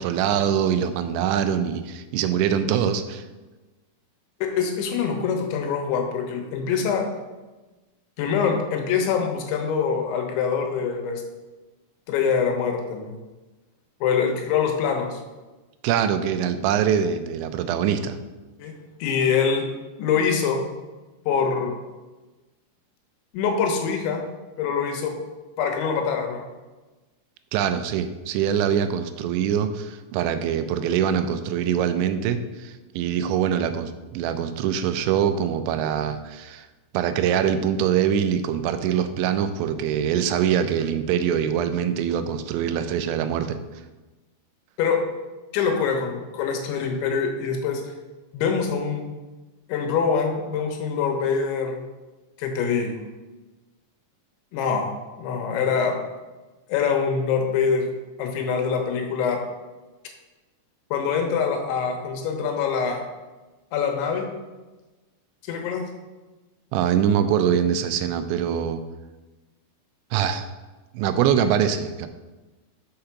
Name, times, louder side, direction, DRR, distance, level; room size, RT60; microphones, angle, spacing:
voice 1, 0.0-3.2 15.8-18.2 27.5-36.7 36.9-43.6 66.7-68.8 70.1-70.5 70.9-72.1, right 8 dB, 90° right, 9 dB, 3.0 m, -23 dB
voice 2, 4.4-7.1 8.2-11.2 12.1-13.1 14.0-15.2 18.6-18.7 19.0-19.7 20.0-20.6 21.3-21.8 23.3-24.2 24.6-25.1 25.6-26.4 44.8-45.0 45.5-47.8 48.3-49.1 49.7-51.8 52.4-52.9 54.5-54.9 55.2-56.0 56.7-57.9 58.2-59.4 60.9-63.0 63.7-64.3 65.4-65.8, left 6 dB, 85° left, 3 dB, 3.4 m, -24 dB
6.6 x 5.6 x 5.8 m, 1.2 s
omnidirectional pair, 5.2 m